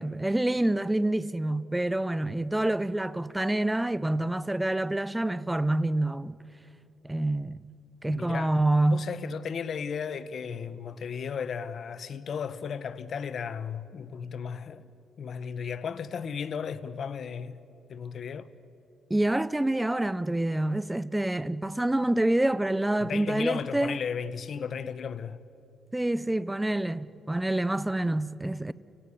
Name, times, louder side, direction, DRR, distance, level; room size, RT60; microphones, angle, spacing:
voice 1, 0.0-6.4 7.0-7.6 8.0-9.1 19.1-24.0 25.9-28.7, right 1 dB, 10° right, 0.6 m, -27 dB
voice 2, 8.1-8.6 8.8-14.9 15.2-17.6 17.9-18.5 23.0-25.4, left 6 dB, 55° left, 1.0 m, -35 dB
29.5 x 17.0 x 8.5 m
cardioid pair, 90°, 0 cm